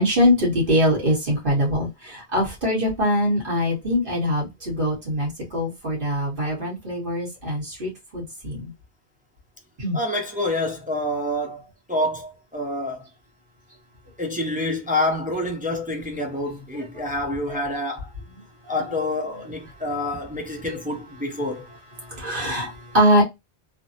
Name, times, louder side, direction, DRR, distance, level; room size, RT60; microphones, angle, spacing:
voice 1, 0.0-8.7 9.8-10.0 22.1-23.2, equal, 55° right, 1.6 m, -23 dB
voice 2, 9.9-13.1 14.2-18.1 18.7-21.6, left 1 dB, 10° right, 0.4 m, -27 dB
3.2 x 2.0 x 2.7 m
omnidirectional pair, 1.0 m